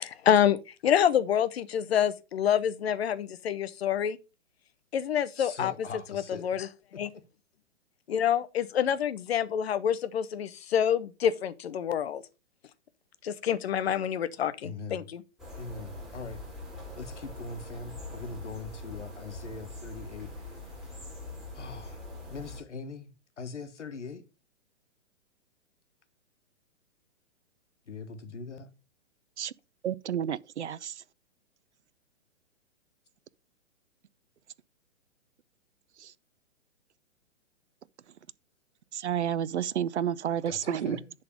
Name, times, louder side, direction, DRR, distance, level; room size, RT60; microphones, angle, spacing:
voice 1, 0.0-4.2 4.9-5.7 6.1-6.7 7.0-7.1 8.1-12.2 13.2-15.2, left 9 dB, 60° left, 1.0 m, -27 dB
voice 2, 5.4-6.5 6.9-7.0 14.6-15.1 15.6-16.4 17.0-20.7 21.5-24.2 27.9-28.7 40.5-41.1, left 4 dB, 75° left, 1.6 m, -41 dB
sound 1, 15.4-22.6, left 2 dB, ahead, 3.6 m, -43 dB
voice 3, 29.8-31.0 36.0-36.1 38.9-41.0, right 9 dB, 70° right, 0.6 m, -31 dB
10.5 x 4.0 x 5.3 m
figure-of-eight pair, 120°, 36 cm